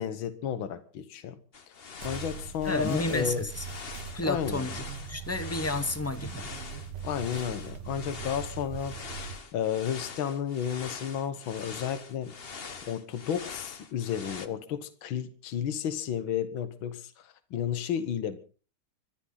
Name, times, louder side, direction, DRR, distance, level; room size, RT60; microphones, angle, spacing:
voice 1, 0.0-1.4 2.0-3.4 4.2-4.7 7.0-12.3 12.9-18.4, left 9 dB, 70° left, 2.0 m, -32 dB
sound 1, 1.5-14.5, left 5 dB, 35° left, 1.0 m, -43 dB
sound 2, 2.0-9.4, right 7 dB, 80° right, 2.0 m, -41 dB
voice 2, 2.6-3.7 4.1-6.5, left 2 dB, 10° left, 0.6 m, -31 dB
25.0 x 13.0 x 3.9 m
omnidirectional pair, 2.3 m